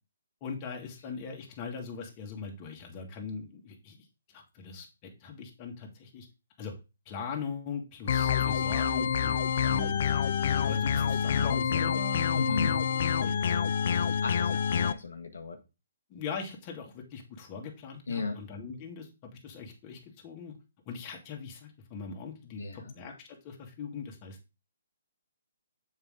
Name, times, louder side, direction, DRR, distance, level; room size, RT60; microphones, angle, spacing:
voice 1, 0.4-4.0 4.3-6.3 6.6-6.7 7.1-10.0 10.6-13.6 16.1-20.5 20.9-24.4, left 5 dB, 30° left, 1 dB, 1.8 m, -41 dB
sound 1, 8.1-14.9, left 7 dB, 55° left, 0.5 m, -27 dB
voice 2, 12.3-12.8 14.1-15.6 18.1-18.4 22.6-22.9, left 4 dB, 80° left, 4 dB, 1.2 m, -35 dB
6.9 x 4.9 x 3.6 m, 0.28 s
hypercardioid pair, 145°, 0 cm